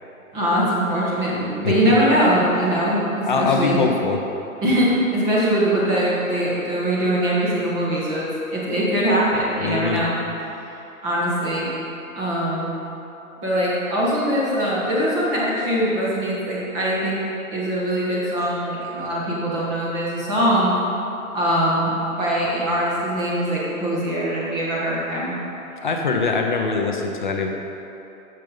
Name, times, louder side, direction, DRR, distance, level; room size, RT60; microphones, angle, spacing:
voice 1, 0.3-3.8 4.6-8.3 8.5-10.1 11.0-11.7 12.1-12.7 13.4-17.2 17.5-20.7 21.3-25.3, equal, 15° right, -7 dB, 1.4 m, -22 dB
voice 2, 3.3-4.2 9.6-10.0 25.8-27.5, left 4 dB, 35° left, 2 dB, 0.6 m, -22 dB
6.9 x 6.8 x 5.1 m, 3.0 s
hypercardioid pair, 160°, 42 cm